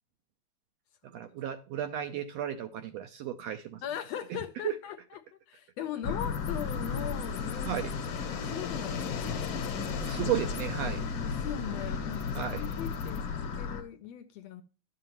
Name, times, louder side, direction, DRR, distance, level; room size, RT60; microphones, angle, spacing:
voice 1, 1.1-3.8 4.6-4.7 7.6-7.9 10.0-11.0 12.3-12.6, right 10 dB, 75° right, 1.6 m, -34 dB
voice 2, 3.8-5.2 5.5-7.8 8.3-9.4 11.3-14.6, left 10 dB, 75° left, 1.6 m, -40 dB
sound 1, 6.0-13.8, left 5 dB, 60° left, 1.8 m, -34 dB
12.0 x 7.5 x 3.0 m
omnidirectional pair, 3.4 m